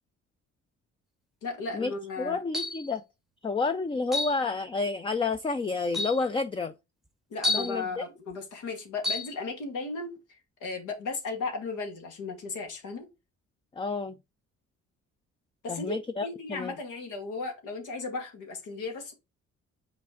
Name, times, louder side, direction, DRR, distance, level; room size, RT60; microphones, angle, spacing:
voice 1, 1.4-2.4 7.3-10.1 10.6-13.1 15.6-15.9 16.2-19.1, left 3 dB, 85° left, 2.0 m, -35 dB
voice 2, 2.2-3.0 3.4-6.7 7.5-8.1 13.8-14.2 15.7-16.7, left 4 dB, 15° left, 0.4 m, -30 dB
sound 1, 2.5-2.9 4.1-4.4 5.3-5.4 5.9-6.2 7.4-7.8 9.0-9.3, left 2 dB, ahead, 0.8 m, -29 dB
5.9 x 4.2 x 3.8 m
cardioid pair, 90°, 30 cm